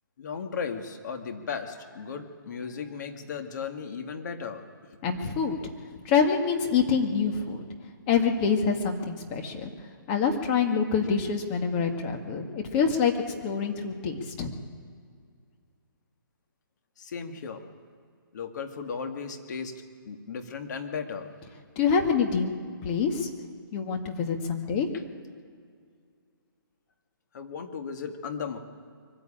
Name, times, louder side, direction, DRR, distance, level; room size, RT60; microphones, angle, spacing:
voice 1, 0.2-4.6 5.4-5.5 17.0-17.7 18.3-19.7 20.1-21.3 24.9-25.0 27.3-28.6, left 6 dB, 50° left, 5 dB, 2.1 m, -36 dB
voice 2, 5.0-5.6 6.1-7.7 8.1-9.7 10.1-13.1 13.4-14.5 21.8-22.5 22.8-23.3 23.7-24.9, left 6 dB, 25° left, 3 dB, 2.0 m, -26 dB
23.0 x 14.5 x 8.8 m, 2.1 s
hypercardioid pair, 150°, 12 cm